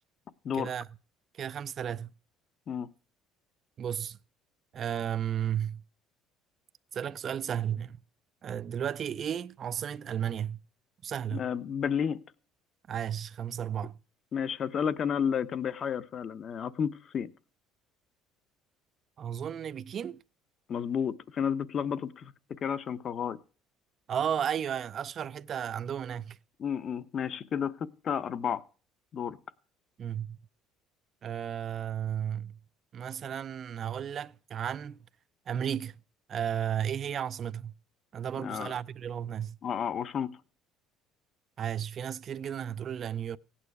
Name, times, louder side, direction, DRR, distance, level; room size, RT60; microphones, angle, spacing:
voice 1, 0.5-0.9 1.3-2.1 3.8-4.2 4.7-5.8 6.9-8.0 8.4-10.6 11.0-11.5 12.9-14.0 19.2-20.2 24.1-26.4 30.0-30.4 31.2-32.6 32.9-35.0 35.5-36.0 36.3-37.7 38.1-39.6 41.6-43.4, right 9 dB, 40° right, 0.5 m, -34 dB
voice 2, 11.3-12.2 14.3-17.3 20.7-23.4 26.6-28.6 29.1-29.4 38.4-38.7 39.6-40.3, left 7 dB, 40° left, 0.8 m, -31 dB
16.5 x 8.9 x 4.7 m
cardioid pair, 125°, 0 cm